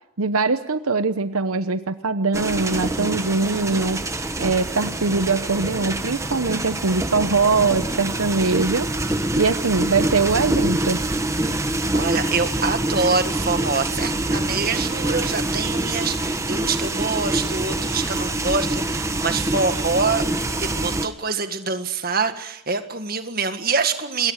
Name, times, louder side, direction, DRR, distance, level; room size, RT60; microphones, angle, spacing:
voice 1, 0.2-4.0 4.4-8.9 9.4-11.0, right 4 dB, 85° right, 11 dB, 1.0 m, -22 dB
sound 1, 2.3-21.1, right 1 dB, 15° right, 1.1 m, -25 dB
voice 2, 11.9-20.3 20.6-24.3, right 4 dB, 45° right, 8 dB, 1.8 m, -25 dB
27.5 x 22.0 x 6.5 m, 0.78 s
head